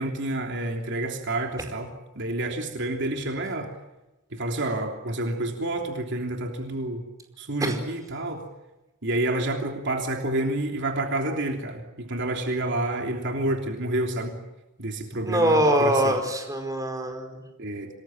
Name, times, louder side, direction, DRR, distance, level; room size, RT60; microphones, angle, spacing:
voice 1, 0.0-3.7 4.3-7.0 7.4-8.4 9.0-14.4 14.8-16.2 17.6-17.9, right 1 dB, 60° right, 3 dB, 3.2 m, -29 dB
voice 2, 15.2-17.4, right 1 dB, 15° right, 4 dB, 4.8 m, -23 dB
27.5 x 20.5 x 9.0 m, 1.0 s
head